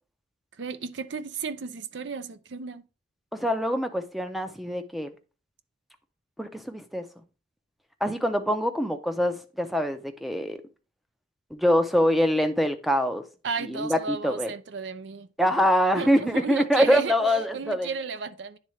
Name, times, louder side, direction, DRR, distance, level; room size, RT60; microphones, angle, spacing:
voice 1, 0.6-2.8 13.4-15.3 16.0-17.1 17.5-18.6, right 5 dB, 65° right, 0.5 m, -34 dB
voice 2, 3.3-5.1 6.4-7.1 8.0-10.6 11.5-13.2 13.6-14.5 15.4-17.9, equal, ahead, 0.5 m, -24 dB
9.9 x 3.6 x 3.1 m
head